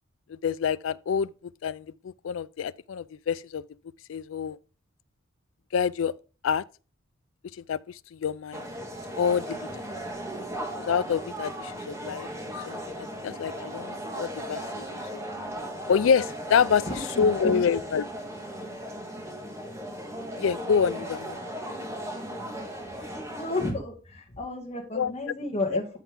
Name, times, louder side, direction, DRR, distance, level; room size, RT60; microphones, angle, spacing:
voice 1, 0.3-1.3 1.6-3.6 4.1-4.6 5.7-6.1 6.4-6.6 7.6-8.6 9.2-9.7 10.8-12.3 12.7-14.9 15.1-15.2 15.9-18.0 20.4-21.4 24.9-25.3 25.7-26.0, left 6 dB, 85° left, 0.4 m, -27 dB
sound 1, 8.5-23.7, equal, 15° right, 1.5 m, -37 dB
voice 2, 16.8-17.3 17.5-17.6 23.1-26.0, left 2 dB, 35° left, 2.2 m, -32 dB
12.5 x 4.6 x 3.7 m
head